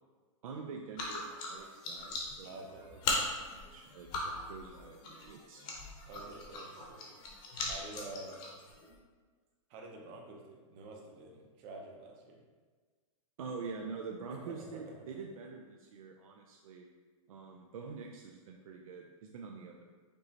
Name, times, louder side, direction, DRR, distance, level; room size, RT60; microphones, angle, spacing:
voice 1, 0.4-2.5 2.8-3.0 3.5-5.7 13.4-16.9 17.3-19.8, right 5 dB, 85° right, 1 dB, 0.5 m, -46 dB
sound 1, 1.0-9.0, left 2 dB, 25° left, 0.7 m, -40 dB
voice 2, 2.4-2.9 6.1-7.1 7.6-8.4 9.7-12.4 14.3-15.1, right 2 dB, 30° right, 0 dB, 0.6 m, -48 dB
5.2 x 3.1 x 2.8 m, 1.4 s
supercardioid pair, 160°, 17 cm